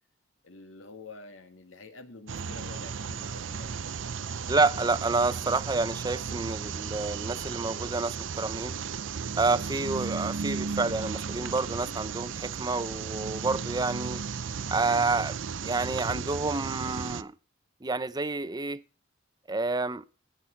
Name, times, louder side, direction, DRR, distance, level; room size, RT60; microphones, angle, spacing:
voice 1, 0.4-3.7, left 3 dB, 85° left, 2.1 m, -47 dB
sound 1, 2.3-17.2, right 6 dB, 75° right, 0.6 m, -35 dB
voice 2, 4.5-8.7 9.4-14.2 14.7-15.4 15.6-17.3 17.8-18.8 19.5-20.0, right 3 dB, 20° right, 0.7 m, -29 dB
16.0 x 6.1 x 5.8 m
head